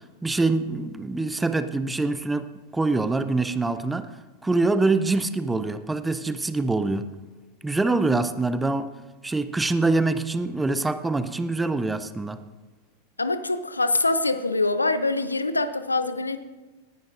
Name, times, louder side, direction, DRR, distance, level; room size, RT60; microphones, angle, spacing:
voice 1, 0.2-4.1 4.4-7.1 7.6-8.9 9.2-12.4, right 3 dB, 10° right, 11 dB, 0.6 m, -24 dB
voice 2, 13.2-16.4, left 2 dB, 80° left, 13 dB, 0.6 m, -24 dB
18.0 x 10.5 x 2.5 m, 1.3 s
figure-of-eight pair, 90°, 0 cm